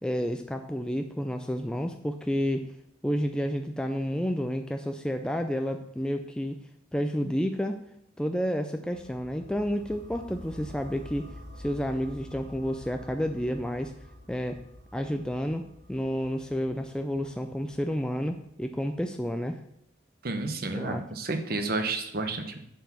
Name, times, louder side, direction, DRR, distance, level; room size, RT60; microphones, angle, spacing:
voice 1, 0.0-2.7 3.0-6.6 6.9-7.8 8.2-11.3 11.6-13.9 14.3-14.6 14.9-19.6 20.7-21.0, equal, 5° left, 5 dB, 0.3 m, -30 dB
sound 1, 8.9-18.9, left 1 dB, 70° right, 3.7 m, -48 dB
voice 2, 20.2-22.6, right 3 dB, 50° right, 7 dB, 0.8 m, -31 dB
7.5 x 4.6 x 6.9 m, 0.75 s
head